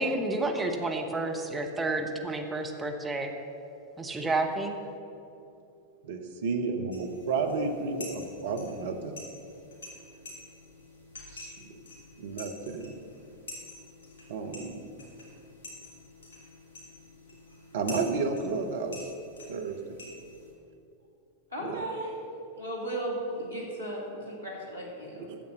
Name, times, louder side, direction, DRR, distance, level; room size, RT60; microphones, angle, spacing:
voice 1, 0.0-3.3 4.0-4.8, right 2 dB, 10° right, 2 dB, 1.0 m, -30 dB
voice 2, 6.0-9.2 11.3-11.8 12.2-13.0 14.3-14.8 17.7-19.1 19.5-20.0 21.6-21.8 25.1-25.4, right 4 dB, 55° right, 5 dB, 1.0 m, -32 dB
sound 1, 6.9-20.5, left 2 dB, 65° left, 2.8 m, -48 dB
voice 3, 21.5-22.2 22.5-25.3, right 1 dB, 85° right, -3 dB, 2.4 m, -35 dB
10.0 x 7.1 x 6.7 m, 2.8 s
figure-of-eight pair, 90°, 0 cm